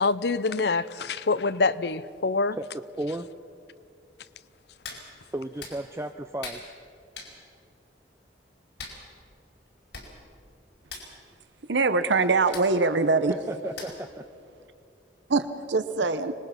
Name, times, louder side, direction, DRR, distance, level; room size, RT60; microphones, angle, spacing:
voice 1, 0.0-2.6, left 3 dB, 65° left, 16 dB, 0.6 m, -25 dB
voice 2, 3.0-3.3 5.3-6.6 13.5-14.2, right 1 dB, 15° right, 7 dB, 0.4 m, -34 dB
Hands, 4.8-5.0 5.6-5.8 6.4-6.6 7.1-7.3 8.8-9.0 9.7-9.8 9.9-10.1 10.4-10.5 10.8-11.1 12.5-12.7 13.8-14.1 14.6-14.7, left 4 dB, 85° left, 4.8 m, -39 dB
voice 3, 11.7-13.3 15.3-16.3, right 3 dB, 85° right, 10 dB, 0.9 m, -23 dB
25.0 x 21.0 x 5.9 m, 2.5 s
head